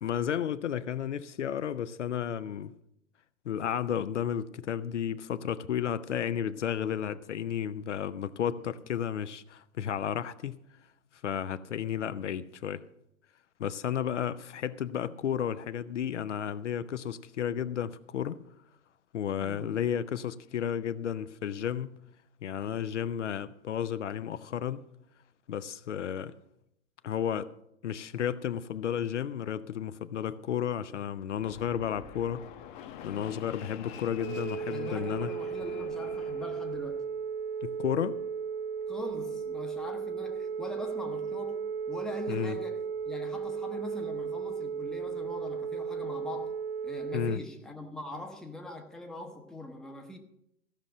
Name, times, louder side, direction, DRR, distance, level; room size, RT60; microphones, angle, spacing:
voice 1, 0.0-2.7 3.4-10.6 11.2-12.8 13.6-18.4 19.1-22.0 22.4-24.8 25.5-26.3 27.0-27.5 27.8-32.5 33.0-35.3 37.6-38.2 42.3-42.6 47.1-47.4, left 9 dB, 65° left, 0.6 m, -32 dB
voice 2, 19.4-19.8 34.6-37.0 38.9-46.5 46.8-50.2, left 1 dB, ahead, 0.8 m, -42 dB
Fixed-wing aircraft airplane, 31.4-37.0, left 8 dB, 40° left, 1.0 m, -46 dB
Telephone, 34.1-47.4, right 6 dB, 45° right, 0.6 m, -35 dB
15.0 x 6.0 x 6.5 m
figure-of-eight pair, 105°, 39 cm